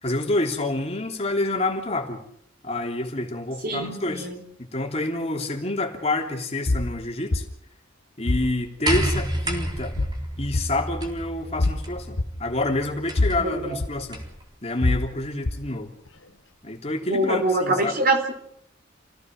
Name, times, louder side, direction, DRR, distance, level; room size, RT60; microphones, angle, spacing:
voice 1, 0.0-2.2 2.6-4.3 4.6-7.4 8.2-10.0 10.4-14.2 14.6-15.9 16.6-18.0, left 2 dB, 30° left, 2 dB, 3.2 m, -28 dB
voice 2, 3.6-4.4 13.4-13.8 17.1-18.3, right 2 dB, 50° right, 5 dB, 4.2 m, -24 dB
sound 1, 6.7-6.9 7.3-7.4 8.3-8.5 8.9-9.1 10.0-10.2 10.5-10.6 11.6-11.8 12.2-12.3 13.2-13.4 13.8-13.9 14.8-15.1 15.4-15.6, left 2 dB, 85° left, 1.5 m, -23 dB
sound 2, 8.9-14.5 15.5-15.6, right 1 dB, 20° right, 3.9 m, -31 dB
28.5 x 17.0 x 6.6 m, 0.73 s
head